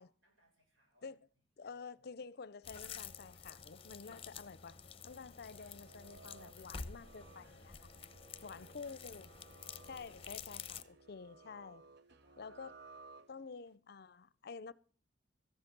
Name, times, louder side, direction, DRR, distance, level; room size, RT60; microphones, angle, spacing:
voice 1, 0.2-1.4 8.2-9.2 10.1-10.3 11.2-11.6 12.0-12.9, equal, 90° right, 6.7 m, -75 dB
voice 2, 1.6-7.9 8.4-9.3 9.8-11.8 12.4-12.7 13.3-14.7, left 5 dB, 55° left, 0.6 m, -50 dB
sound 1, 2.6-10.8, left 6 dB, 30° left, 0.8 m, -50 dB
sound 2, 5.5-13.7, right 3 dB, 60° right, 0.8 m, -60 dB
14.5 x 10.5 x 6.0 m
head